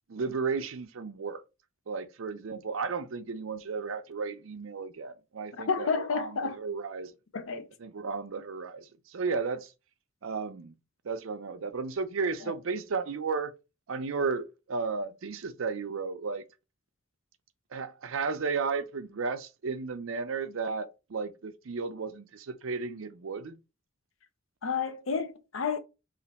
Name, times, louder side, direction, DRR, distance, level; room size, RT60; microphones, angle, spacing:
voice 1, 0.1-1.4 1.9-7.1 7.8-9.7 10.2-10.7 11.0-13.5 13.9-16.4 17.7-23.6, right 4 dB, 75° right, 0.5 m, -34 dB
voice 2, 5.5-6.6 7.3-7.7 12.4-12.5 24.6-25.8, left 5 dB, 75° left, 0.6 m, -31 dB
3.2 x 2.5 x 4.0 m
head